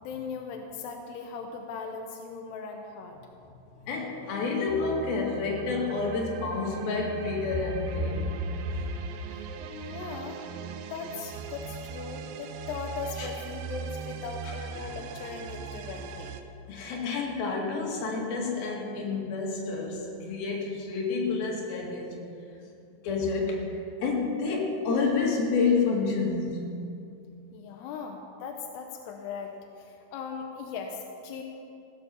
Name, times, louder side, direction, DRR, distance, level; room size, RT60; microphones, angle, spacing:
voice 1, 0.0-3.3 9.3-10.4 10.9-16.4 27.5-31.4, left 5 dB, 90° left, 3 dB, 2.9 m, -39 dB
voice 2, 3.8-8.3 8.6-8.7 13.2-13.3 16.7-22.2 23.0-26.6, left 4 dB, 70° left, -1 dB, 3.7 m, -29 dB
sound 1, 4.7-16.4, right 7 dB, 80° right, 2.3 m, -40 dB
16.0 x 8.6 x 7.0 m, 2.6 s
omnidirectional pair, 4.6 m